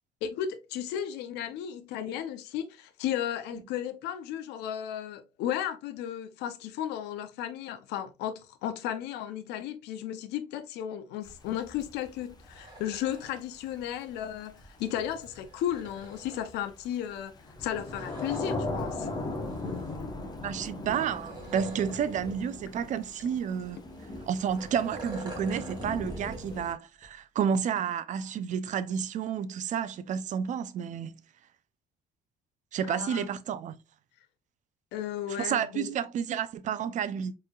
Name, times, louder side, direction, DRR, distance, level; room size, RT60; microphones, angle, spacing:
voice 1, 0.2-17.3 17.6-19.1 32.9-33.3 34.9-35.9, left 10 dB, 85° left, 0.5 m, -34 dB
Thunder / Rain, 11.2-26.7, left 2 dB, 25° left, 0.8 m, -39 dB
sound 1, 12.3-13.4 14.6-16.5 17.6-18.8 19.3-20.1 20.9-22.4 22.7-22.8 23.6-26.7 27.0-27.1, right 1 dB, 25° right, 1.4 m, -45 dB
voice 2, 20.4-23.8 24.3-31.1 32.7-33.8 35.4-37.3, right 8 dB, 45° right, 0.4 m, -30 dB
4.3 x 3.2 x 2.3 m
cardioid pair, 110°, 17 cm